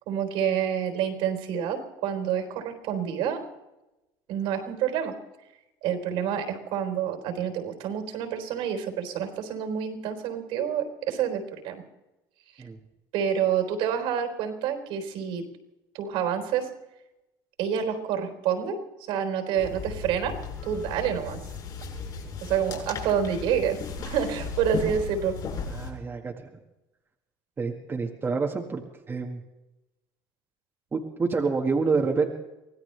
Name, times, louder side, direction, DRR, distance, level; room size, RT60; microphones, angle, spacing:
voice 1, 0.1-3.5 4.3-5.2 5.8-11.8 13.1-15.4 15.9-16.7 17.6-18.8 19.1-21.4 22.4-25.4, right 8 dB, 75° right, 5 dB, 4.0 m, -28 dB
sound 1, 19.6-25.9, left 4 dB, 50° left, 6.5 m, -36 dB
voice 2, 25.7-26.5 27.6-29.4 30.9-32.3, right 4 dB, 25° right, 1 dB, 1.8 m, -28 dB
24.5 x 17.0 x 3.4 m, 0.99 s
cardioid pair, 125°, 9 cm